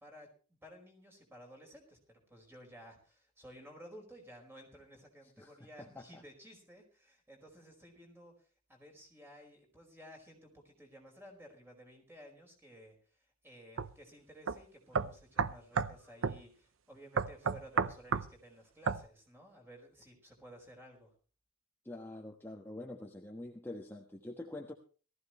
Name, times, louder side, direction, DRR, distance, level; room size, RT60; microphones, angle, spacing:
voice 1, 0.0-21.1, equal, 10° right, 1 dB, 5.0 m, -55 dB
voice 2, 5.8-6.2 21.8-24.7, left 1 dB, 10° left, 1 dB, 1.3 m, -45 dB
sound 1, 13.8-13.9 14.5-14.6 14.9-16.0 16.2-16.4 17.2-18.3 18.9-19.0, right 5 dB, 75° right, 0.7 m, -31 dB
18.5 x 15.0 x 3.2 m, 0.38 s
head